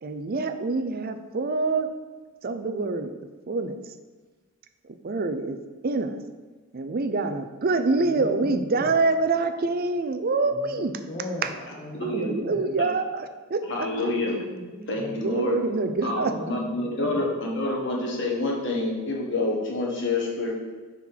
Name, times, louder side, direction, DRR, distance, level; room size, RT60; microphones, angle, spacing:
voice 1, 0.0-1.9 2.4-3.1 3.5-3.7 5.0-5.6 5.8-6.2 6.7-11.0 11.4-11.5 12.0-13.9 15.2-16.3, right 3 dB, 45° right, 9 dB, 0.5 m, -26 dB
voice 2, 8.0-9.0 10.5-12.7 14.3-15.2 16.3-17.2, left 1 dB, 45° left, 0 dB, 1.2 m, -38 dB
voice 3, 13.7-14.4 14.9-15.6 16.0-20.5, left 2 dB, 60° left, -2 dB, 1.6 m, -27 dB
6.1 x 4.5 x 5.6 m, 1.3 s
head